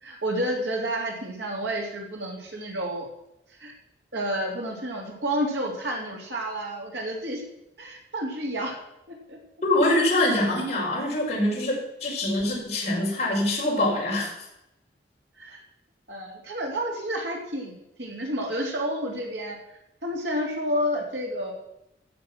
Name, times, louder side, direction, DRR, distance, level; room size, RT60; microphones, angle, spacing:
voice 1, 0.0-3.1 3.6-3.7 4.1-7.4 7.8-8.8 9.1-9.4 15.4-15.6 16.1-17.7 18.0-19.6 20.0-21.5, equal, 80° right, 0 dB, 3.4 m, -30 dB
voice 2, 9.6-14.3, left 1 dB, 40° left, -3 dB, 4.9 m, -24 dB
15.0 x 7.0 x 6.1 m, 0.85 s
head